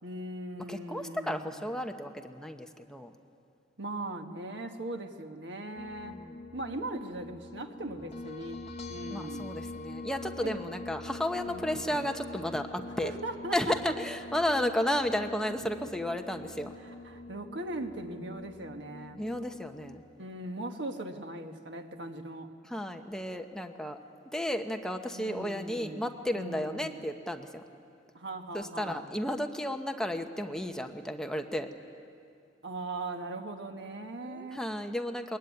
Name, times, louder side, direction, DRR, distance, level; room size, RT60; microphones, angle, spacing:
voice 1, 0.0-1.6 3.8-8.6 8.9-9.6 10.4-10.6 11.5-12.0 13.0-13.6 13.9-14.0 16.8-19.3 20.2-22.5 25.1-27.0 28.1-29.1 32.6-34.6, right 2 dB, 70° right, 5 dB, 1.5 m, -39 dB
voice 2, 0.7-3.1 6.0-6.4 9.1-13.1 13.5-16.7 19.1-20.0 22.7-24.0 24.3-27.6 28.5-31.7 34.2-35.4, left 1 dB, 5° left, 5 dB, 0.9 m, -33 dB
sound 1, 5.8-20.0, left 2 dB, 35° left, 1.7 m, -45 dB
22.0 x 21.0 x 9.6 m, 2.4 s
head